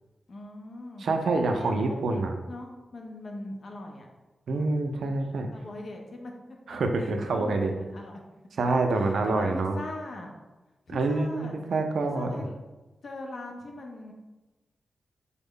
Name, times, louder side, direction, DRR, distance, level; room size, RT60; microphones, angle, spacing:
voice 1, 0.3-1.1 1.5-2.0 2.5-4.1 5.5-8.2 8.6-10.3 10.9-11.6 12.0-12.6 13.0-14.1, left 2 dB, 65° left, 1 dB, 0.6 m, -41 dB
voice 2, 1.0-2.3 4.5-5.5 6.7-7.8 8.6-9.8 10.9-12.5, right 3 dB, 80° right, 4 dB, 0.3 m, -26 dB
3.5 x 2.1 x 3.6 m, 1.1 s
cardioid pair, 65°, 0 cm